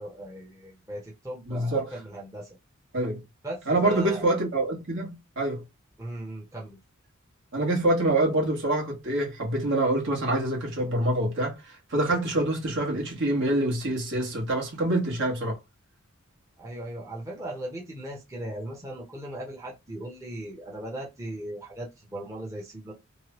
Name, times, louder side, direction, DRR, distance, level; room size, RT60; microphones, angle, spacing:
voice 1, 0.0-2.6 3.4-4.2 6.0-6.8 16.6-22.9, right 1 dB, 15° right, 0.9 m, -38 dB
voice 2, 1.5-1.9 2.9-3.2 3.7-5.6 7.5-15.6, right 1 dB, 60° right, 1.4 m, -26 dB
3.1 x 2.2 x 3.0 m
head